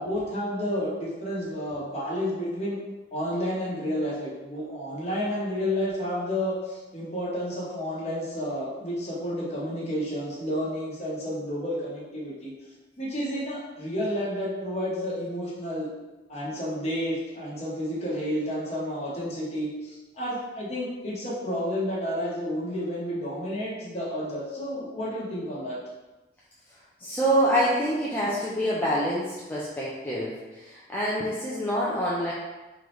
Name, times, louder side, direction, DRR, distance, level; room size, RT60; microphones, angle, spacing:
voice 1, 0.0-2.8 3.1-12.5 13.0-15.9 16.3-25.8, equal, 35° left, -6 dB, 1.1 m, -31 dB
voice 2, 27.0-32.3, equal, 10° left, -7 dB, 0.5 m, -26 dB
3.8 x 3.1 x 3.1 m, 1.1 s
head